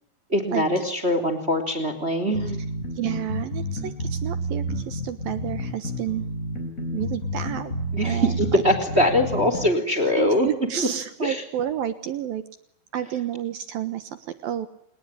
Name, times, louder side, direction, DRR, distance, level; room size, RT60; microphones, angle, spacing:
voice 1, 0.3-2.6 7.9-10.5 11.2-11.4, left 1 dB, 15° right, 10 dB, 2.9 m, -22 dB
sound 1, 2.3-9.7, equal, 15° left, 4.9 m, -30 dB
voice 2, 3.0-6.3 6.9-7.7 8.0-8.6 10.2-12.4 12.9-14.7, right 11 dB, 70° right, 11 dB, 2.4 m, -30 dB
28.5 x 20.5 x 9.9 m, 0.78 s
omnidirectional pair, 5.6 m